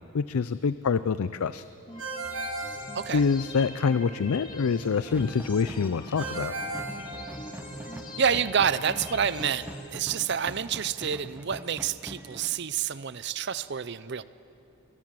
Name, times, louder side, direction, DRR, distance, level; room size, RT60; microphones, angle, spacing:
voice 1, 0.1-1.6 3.1-6.5, left 5 dB, 80° left, 14 dB, 0.4 m, -26 dB
sound 1, 1.9-9.9, left 1 dB, 20° left, 2.0 m, -42 dB
Ringtone, 2.0-3.7 6.2-7.8, right 3 dB, 75° right, 6.5 m, -36 dB
sound 2, 5.1-12.6, right 1 dB, 10° right, 0.8 m, -44 dB
voice 2, 8.2-14.2, right 7 dB, 50° right, 15 dB, 0.6 m, -28 dB
23.0 x 19.0 x 7.6 m, 3.0 s
head